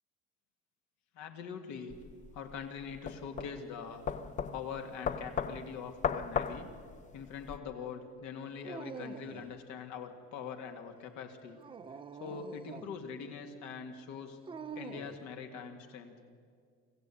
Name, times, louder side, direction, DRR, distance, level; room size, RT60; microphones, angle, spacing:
voice 1, 1.1-2.0 2.3-4.0 4.5-6.7 7.1-11.6 12.2-14.4 14.8-16.1, left 6 dB, 70° left, 5 dB, 2.2 m, -43 dB
sound 1, 1.9-7.6, left 7 dB, 25° left, 0.7 m, -37 dB
Dog, 8.6-9.6 11.5-13.0 14.5-15.2, right 5 dB, 20° right, 0.6 m, -45 dB
25.5 x 15.0 x 8.6 m, 2.1 s
cardioid pair, 175°, 29 cm